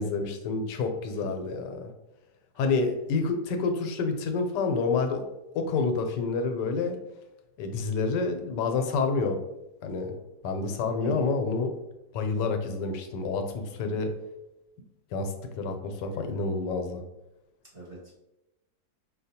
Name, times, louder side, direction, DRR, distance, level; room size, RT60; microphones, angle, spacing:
voice 1, 0.0-1.9 2.6-5.2 5.5-7.0 7.6-9.4 9.8-10.1 10.4-11.7 12.1-14.1 15.1-17.0, left 4 dB, 85° left, 5 dB, 1.2 m, -28 dB
voice 2, 17.7-18.2, right 1 dB, 35° right, -7 dB, 0.8 m, -39 dB
4.8 x 2.2 x 2.7 m, 0.93 s
omnidirectional pair, 1.8 m